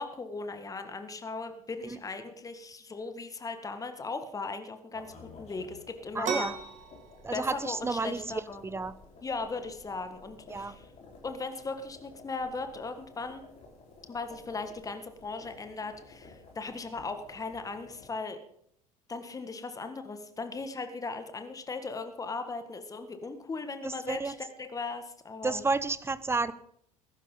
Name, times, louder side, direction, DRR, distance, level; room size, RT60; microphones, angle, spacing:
voice 1, 0.0-6.5 7.3-8.7 9.2-10.9 11.2-13.4 14.1-18.4 19.1-25.6, left 3 dB, 20° left, 8 dB, 1.8 m, -38 dB
sound 1, 4.9-18.1, left 3 dB, 35° left, 4.3 m, -54 dB
voice 2, 6.1-6.5 7.2-8.9 10.5-10.8 23.8-24.3 25.4-26.5, right 3 dB, 15° right, 17 dB, 0.9 m, -31 dB
sound 2, 6.2-15.6, right 7 dB, 40° right, 2.5 m, -44 dB
20.5 x 11.5 x 3.9 m, 0.69 s
figure-of-eight pair, 65°, 19 cm